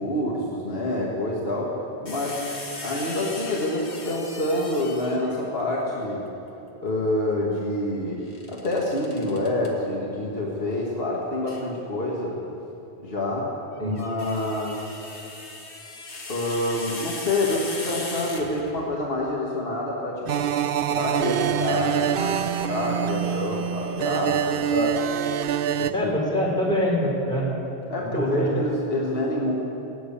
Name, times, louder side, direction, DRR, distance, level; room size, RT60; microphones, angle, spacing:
voice 1, 0.0-6.3 6.8-8.2 8.5-12.4 13.0-13.5 13.8-15.0 16.3-20.4 20.9-24.6 25.8-26.1 27.9-29.5, left 1 dB, 65° left, -3 dB, 1.8 m, -27 dB
sound 1, 2.1-5.4 8.2-9.7 11.5-11.7 13.8-18.9, left 3 dB, 85° left, 1.9 m, -38 dB
sound 2, 20.3-25.9, right 9 dB, 65° right, 0.7 m, -25 dB
voice 2, 25.9-27.5 28.1-28.5, equal, 5° left, -3 dB, 3.9 m, -24 dB
17.0 x 9.2 x 8.5 m, 3.0 s
omnidirectional pair, 1.1 m